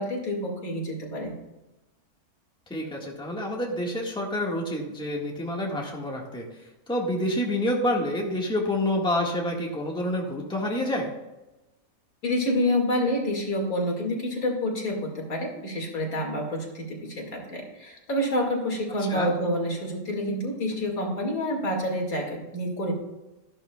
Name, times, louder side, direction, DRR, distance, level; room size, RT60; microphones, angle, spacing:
voice 1, 0.0-1.3 12.2-22.9, left 1 dB, 70° left, 0 dB, 2.6 m, -28 dB
voice 2, 2.7-6.5 6.9-11.1 19.0-19.3, left 1 dB, 5° left, -2 dB, 1.5 m, -28 dB
14.0 x 11.0 x 2.3 m, 1.0 s
omnidirectional pair, 1.6 m